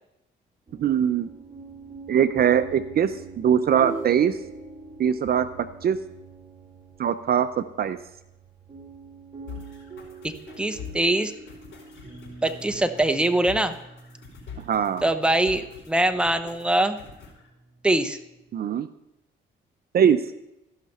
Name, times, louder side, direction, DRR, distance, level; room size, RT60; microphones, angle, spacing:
sound 1, 0.7-18.5, right 4 dB, 25° right, 2.8 m, -45 dB
voice 1, 0.8-1.3 2.1-4.4 5.0-6.0 7.0-8.0 14.6-15.0 18.5-18.9 19.9-20.2, right 8 dB, 50° right, 12 dB, 0.5 m, -22 dB
sound 2, 3.7-4.7, right 1 dB, 30° left, 3.4 m, -35 dB
sound 3, 9.5-17.5, left 6 dB, 70° left, 4.5 m, -45 dB
voice 2, 10.2-11.3 12.4-13.7 15.0-17.0 17.8-18.2, right 1 dB, 5° right, 8 dB, 0.8 m, -23 dB
14.5 x 5.8 x 5.4 m, 0.89 s
cardioid pair, 90°, 20 cm